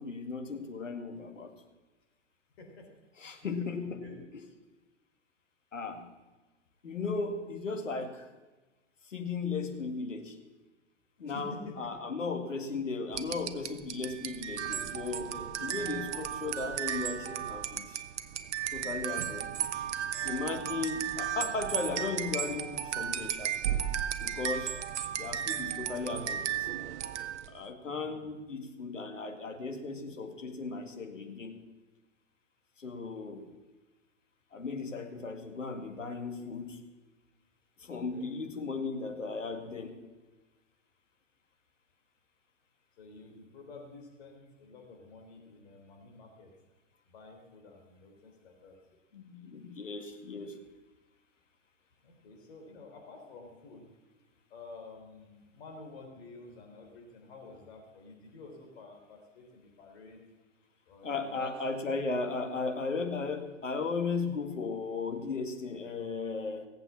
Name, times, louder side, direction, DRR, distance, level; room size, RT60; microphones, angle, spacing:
voice 1, 0.0-1.5 3.2-4.1 5.7-6.1 6.8-8.3 9.1-10.4 11.2-15.3 15.6-18.0 18.7-19.7 20.2-23.6 24.2-24.8 25.1-26.5 27.5-31.6 32.8-33.5 34.5-36.8 37.8-40.0 49.1-50.6 61.0-66.7, left 4 dB, 85° left, 6 dB, 2.0 m, -36 dB
voice 2, 2.6-2.9 3.4-4.1 11.2-11.8 15.3-16.0 27.9-28.3 38.0-38.3 43.0-46.5 47.1-48.8 52.0-54.1 54.5-60.2 60.9-61.6, left 3 dB, 55° left, 2 dB, 3.8 m, -50 dB
sound 1, 13.1-27.6, right 9 dB, 65° right, 1.0 m, -35 dB
17.5 x 8.0 x 7.3 m, 1.2 s
hypercardioid pair, 110°, 37 cm